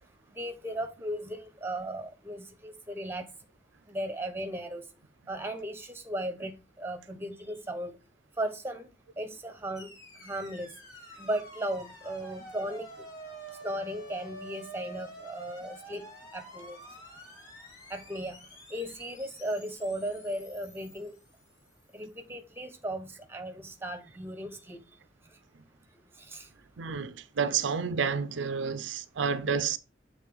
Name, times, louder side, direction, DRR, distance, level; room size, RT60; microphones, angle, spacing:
voice 1, 0.3-3.3 3.9-4.8 5.3-8.0 8.4-8.9 9.2-9.9 10.2-10.7 11.2-13.1 13.6-16.0 16.3-16.8 17.9-18.4 18.7-21.1 21.9-24.8 26.2-26.5, right 1 dB, 15° right, 1.1 m, -36 dB
sound 1, 9.7-22.0, right 1 dB, 20° left, 5.0 m, -48 dB
voice 2, 26.8-29.8, right 6 dB, 80° right, 0.5 m, -30 dB
7.5 x 3.8 x 5.0 m
head